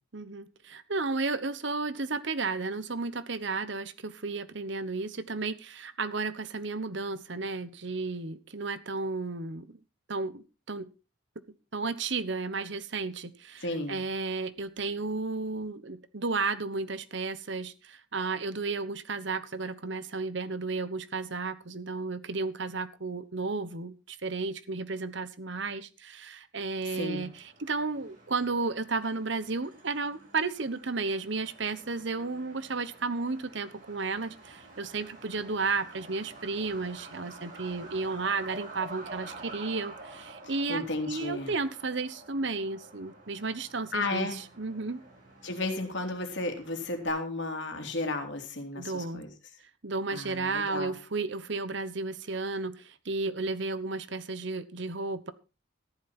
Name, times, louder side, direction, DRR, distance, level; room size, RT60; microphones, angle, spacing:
voice 1, 0.1-9.8 10.1-10.9 11.7-45.0 48.7-49.2 49.8-55.3, right 3 dB, 60° right, 14 dB, 1.1 m, -33 dB
voice 2, 13.6-14.0 26.8-27.3 40.7-41.5 43.9-44.4 45.4-49.3 50.1-50.9, left 2 dB, 60° left, 5 dB, 3.1 m, -33 dB
Truck, 27.1-47.1, right 2 dB, 40° right, 8.0 m, -49 dB
14.0 x 11.0 x 4.4 m, 0.31 s
head